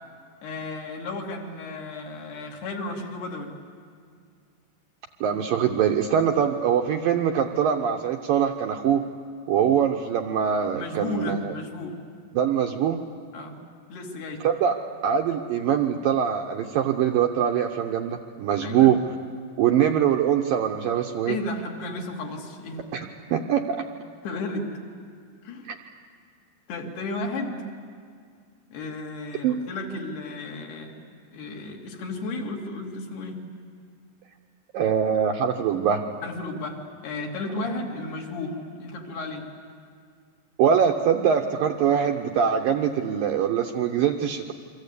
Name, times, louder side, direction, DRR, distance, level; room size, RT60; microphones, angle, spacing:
voice 1, 0.4-3.5 10.7-12.0 13.3-13.5 13.9-14.5 18.6-18.9 21.3-22.9 24.2-24.7 25.4-25.7 26.7-27.6 28.7-31.0 31.3-33.4 36.2-39.5, left 2 dB, 65° left, 0 dB, 4.7 m, -33 dB
voice 2, 5.2-9.0 9.5-11.5 12.3-13.0 14.4-14.8 15.0-19.0 19.6-21.4 22.9-23.8 25.7-25.8 29.4-29.5 34.7-36.0 40.6-44.5, right 8 dB, 75° right, 3 dB, 2.2 m, -23 dB
29.0 x 24.0 x 8.4 m, 2.1 s
omnidirectional pair, 5.1 m